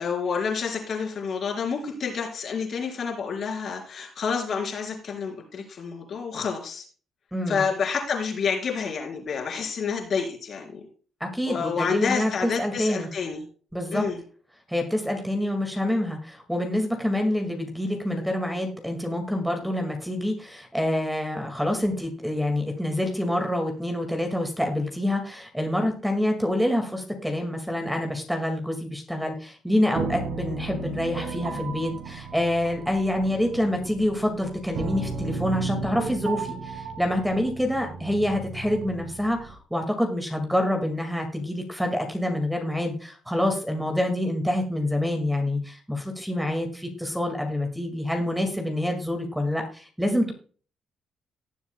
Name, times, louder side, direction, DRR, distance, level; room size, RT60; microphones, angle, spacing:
voice 1, 0.0-6.8 7.5-10.8 11.5-13.4 13.9-14.2, left 6 dB, 55° left, 1 dB, 3.9 m, -29 dB
voice 2, 7.3-7.7 11.2-12.3 12.6-13.1 13.7-14.0 14.7-50.3, left 1 dB, ahead, 4 dB, 2.0 m, -27 dB
sound 1, 30.0-39.6, right 4 dB, 75° right, 1.9 m, -35 dB
18.0 x 7.1 x 2.2 m, 0.40 s
cardioid pair, 90°, 0 cm